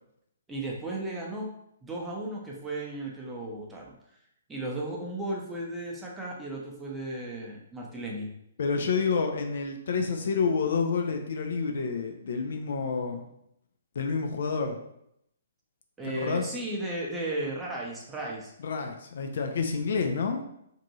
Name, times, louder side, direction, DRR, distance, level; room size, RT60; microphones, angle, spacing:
voice 1, 0.5-1.5 1.8-4.0 4.5-8.3 16.0-18.5, right 1 dB, 10° right, -3 dB, 0.7 m, -35 dB
voice 2, 8.6-13.2 14.0-14.8 16.2-16.5 18.6-20.4, left 5 dB, 55° left, 4 dB, 0.4 m, -28 dB
2.6 x 2.6 x 4.1 m, 0.77 s
figure-of-eight pair, 125°, 0 cm